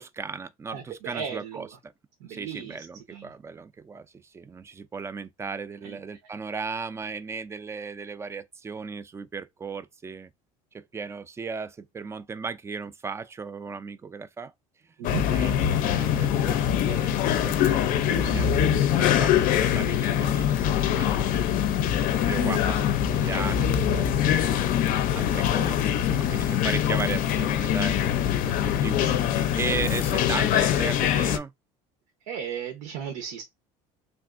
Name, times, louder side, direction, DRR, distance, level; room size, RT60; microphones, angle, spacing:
voice 1, 0.0-1.7 2.3-10.3 10.7-14.5 15.3-21.6 22.2-22.7 23.1-24.7 25.1-31.5, right 5 dB, 15° right, 0.3 m, -36 dB
voice 2, 0.7-1.7 2.2-3.3 5.8-6.0 15.0-15.2 22.4-22.6 25.2-25.4 28.6-29.1 32.3-33.4, right 8 dB, 80° right, 0.9 m, -36 dB
sound 1, 15.0-31.4, left 10 dB, 60° left, 0.5 m, -23 dB
3.4 x 2.4 x 2.4 m
supercardioid pair, 100°, 16 cm